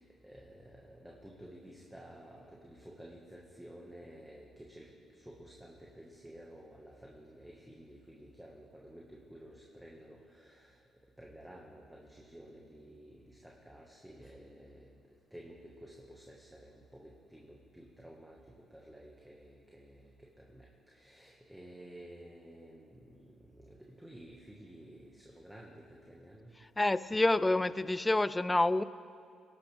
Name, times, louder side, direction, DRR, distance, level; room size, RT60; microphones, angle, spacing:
voice 1, 0.0-10.8 11.2-14.9 15.3-26.5, right 1 dB, 5° right, -3 dB, 1.7 m, -53 dB
voice 2, 26.8-28.8, left 2 dB, 15° left, 16 dB, 0.4 m, -28 dB
23.5 x 12.0 x 3.5 m, 2.2 s
cardioid pair, 90°, 0 cm